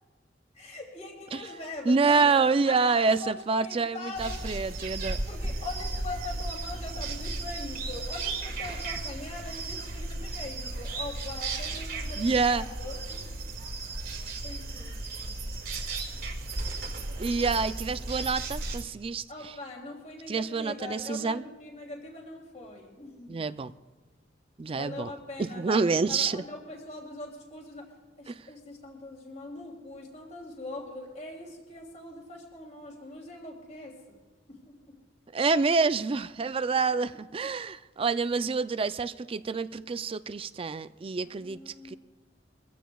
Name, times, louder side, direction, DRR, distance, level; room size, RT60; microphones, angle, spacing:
voice 1, 0.5-4.8 5.3-13.4 13.7-13.8 14.4-15.4 19.3-23.4 24.7-34.2 34.5-35.0 41.2-42.0, left 2 dB, 40° left, 2.8 m, -42 dB
voice 2, 1.9-5.2 12.2-12.7 17.2-19.2 20.3-21.4 23.3-23.7 24.6-25.1 25.4-26.4 28.3-28.4 35.3-41.9, right 4 dB, 30° right, 0.4 m, -27 dB
sound 1, 4.1-18.8, right 2 dB, 55° right, 1.7 m, -35 dB
23.5 x 15.5 x 2.3 m
head